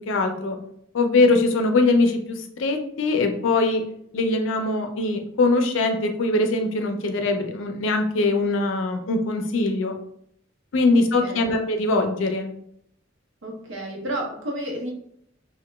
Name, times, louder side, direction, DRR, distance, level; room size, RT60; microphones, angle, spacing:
voice 1, 0.1-0.6 0.9-3.8 4.1-10.0 10.7-12.5, left 2 dB, 70° left, 5 dB, 0.4 m, -22 dB
voice 2, 10.9-11.5 13.4-14.9, right 1 dB, 70° right, -1 dB, 0.8 m, -32 dB
2.9 x 2.1 x 2.2 m, 0.71 s
head